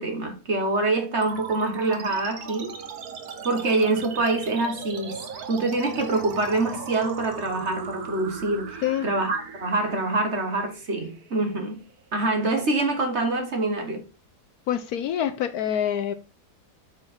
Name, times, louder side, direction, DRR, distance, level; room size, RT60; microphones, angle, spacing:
voice 1, 0.0-2.7 3.4-5.2 5.5-11.8 12.1-14.0, right 2 dB, 45° right, 1.6 m, -25 dB
sound 1, 1.2-12.2, right 6 dB, 65° right, 1.5 m, -38 dB
voice 2, 14.7-16.2, left 10 dB, 70° left, 1.1 m, -26 dB
7.5 x 4.7 x 4.3 m
omnidirectional pair, 1.8 m